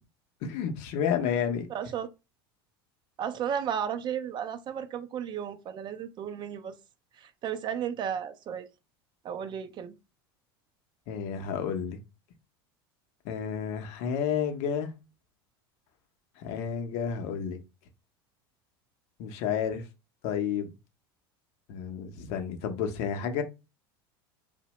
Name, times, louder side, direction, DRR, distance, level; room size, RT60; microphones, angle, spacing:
voice 1, 0.4-1.7 11.1-12.0 13.2-14.9 16.4-17.6 19.2-19.8 20.2-20.7 21.7-23.4, left 7 dB, 60° left, 0.6 m, -31 dB
voice 2, 1.7-2.1 3.2-6.8 7.2-8.7 9.2-10.0, right 8 dB, 35° right, 0.4 m, -34 dB
2.7 x 2.1 x 3.0 m
hypercardioid pair, 85°, 13 cm